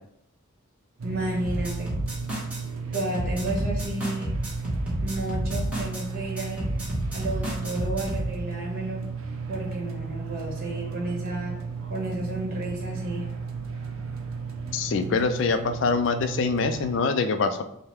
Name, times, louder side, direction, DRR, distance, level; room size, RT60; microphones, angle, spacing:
voice 1, 1.0-1.9 2.9-4.3 5.0-6.7 7.1-9.0 9.5-11.5 11.9-13.3, right 1 dB, 45° right, -2 dB, 1.3 m, -32 dB
sound 1, 1.0-17.0, right 5 dB, 85° right, 0.6 m, -34 dB
sound 2, 1.4-2.6 2.9-6.0 6.4-8.3, equal, 5° right, 1.2 m, -30 dB
voice 2, 14.7-17.6, left 4 dB, 60° left, 9 dB, 0.4 m, -24 dB
5.5 x 2.1 x 3.4 m, 0.73 s
head